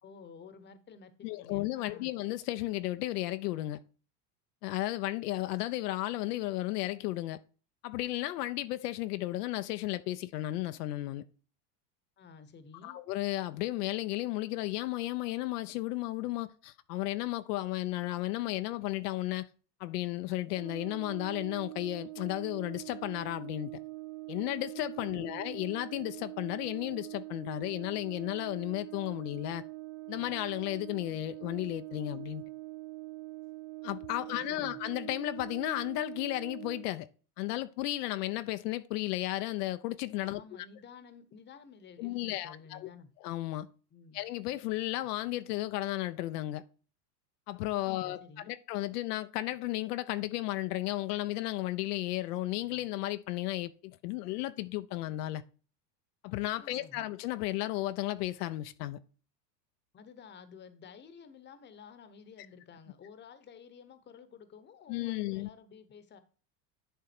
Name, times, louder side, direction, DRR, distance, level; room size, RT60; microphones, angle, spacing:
voice 1, 0.0-2.1 12.2-13.0 25.0-25.4 34.1-34.8 40.2-43.1 43.9-44.2 47.7-48.6 56.5-57.0 59.9-66.2, left 6 dB, 20° left, 1.0 m, -52 dB
voice 2, 1.2-3.8 4.6-7.4 7.8-11.2 12.8-19.5 19.8-23.7 24.3-29.6 30.1-32.4 33.8-37.1 37.4-40.4 42.0-42.9 43.2-43.7 44.1-46.6 47.5-48.2 48.5-55.4 56.2-59.0 64.9-65.5, left 16 dB, 75° left, 0.8 m, -34 dB
Brass instrument, 20.5-36.9, right 23 dB, 55° right, 0.6 m, -44 dB
10.5 x 3.7 x 4.4 m
supercardioid pair, 125°, 48 cm